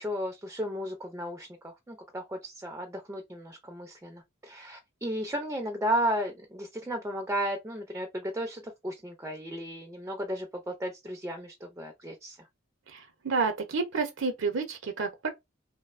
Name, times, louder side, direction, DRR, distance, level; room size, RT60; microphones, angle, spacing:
voice 1, 0.0-12.5, equal, 15° right, 0.4 m, -34 dB
voice 2, 12.9-15.3, right 4 dB, 65° right, 0.6 m, -30 dB
2.6 x 2.0 x 2.4 m
head